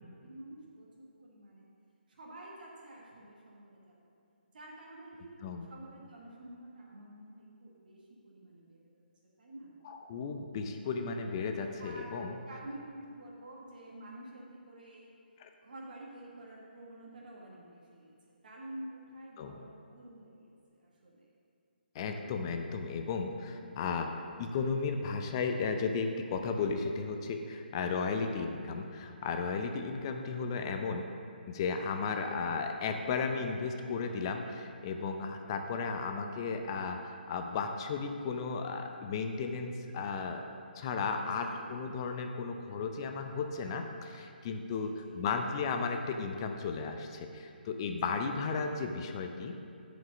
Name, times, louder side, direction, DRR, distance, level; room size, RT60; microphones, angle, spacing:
voice 1, 0.2-1.7 2.1-4.1 4.5-9.0 9.4-9.7 11.8-15.1 15.6-21.3 23.5-23.7 41.2-41.8 44.6-45.3 47.8-48.4, right 1 dB, 55° right, -4 dB, 1.4 m, -49 dB
voice 2, 9.8-12.3 15.4-15.5 19.4-19.6 21.9-24.1 24.4-31.1 31.5-40.5 40.7-49.6, left 5 dB, 30° left, 5 dB, 0.5 m, -34 dB
7.4 x 5.2 x 6.9 m, 2.5 s
figure-of-eight pair, 140°, 6 cm